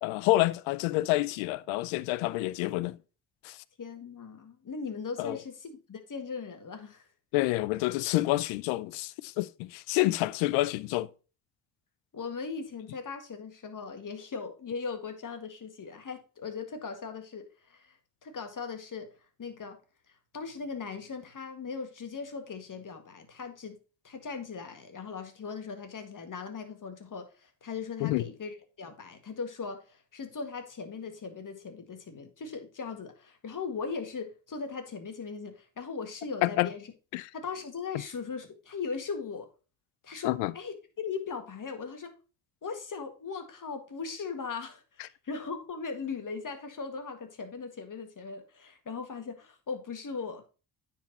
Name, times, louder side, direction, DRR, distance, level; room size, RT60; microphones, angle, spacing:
voice 1, 0.0-3.0 3.4-3.6 5.2-5.4 7.3-11.1 28.0-28.2 36.4-36.7 37.1-37.3 40.2-40.5, left 18 dB, 85° left, 0.6 m, -28 dB
voice 2, 3.8-7.1 12.1-19.1 19.4-19.8 20.1-23.8 24.0-36.8 37.3-39.5 40.0-42.1 42.6-50.4, left 5 dB, 40° left, 1.9 m, -39 dB
9.3 x 4.4 x 4.1 m
hypercardioid pair, 55°, 47 cm